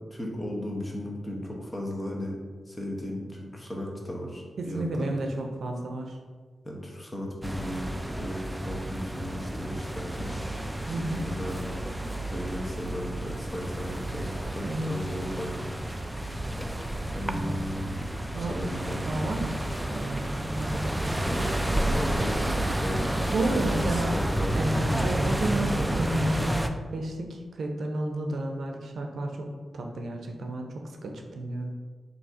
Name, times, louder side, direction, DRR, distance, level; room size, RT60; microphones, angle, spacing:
voice 1, 0.1-2.4 2.7-5.1 6.6-7.9 8.2-10.6 10.9-11.7 12.3-15.6 17.1-18.1 18.4-19.2 21.2-21.5 21.9-24.6, equal, 15° left, -1 dB, 1.0 m, -35 dB
voice 2, 4.6-6.2 10.9-11.2 14.6-14.9 17.2-17.6 18.3-18.6 19.0-19.5 19.9-21.2 23.3-24.1 24.6-29.5 29.7-30.7 31.0-31.7, right 1 dB, 80° right, 2 dB, 0.6 m, -31 dB
sound 1, 7.4-26.7, right 1 dB, 5° right, 0.3 m, -30 dB
sound 2, 9.5-23.3, equal, 25° right, 0.8 m, -50 dB
4.0 x 2.8 x 4.7 m, 1.5 s
wide cardioid pair, 90°, 0 cm